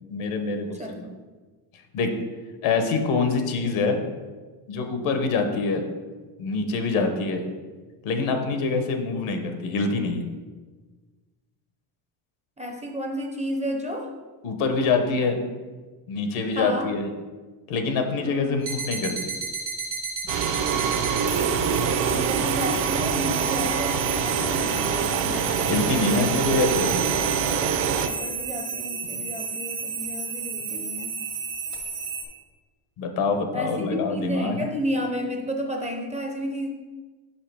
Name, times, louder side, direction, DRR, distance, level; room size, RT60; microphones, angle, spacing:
voice 1, 0.1-1.1 1.9-2.1 2.6-4.0 4.7-5.9 6.4-7.5 8.0-10.2 14.4-15.4 16.1-17.1 17.7-19.3 25.6-26.9 29.0-29.2 33.0-34.7, left 4 dB, 80° left, 5 dB, 1.0 m, -25 dB
voice 2, 12.6-14.1 16.6-16.9 18.2-18.7 22.0-26.4 27.9-31.2 33.5-36.7, equal, 15° right, 3 dB, 0.4 m, -32 dB
sound 1, 18.6-32.3, right 5 dB, 80° right, 1.4 m, -32 dB
sound 2, 20.3-28.1, right 7 dB, 65° right, 0.7 m, -25 dB
5.6 x 5.6 x 3.4 m, 1.4 s
cardioid pair, 120°, 48 cm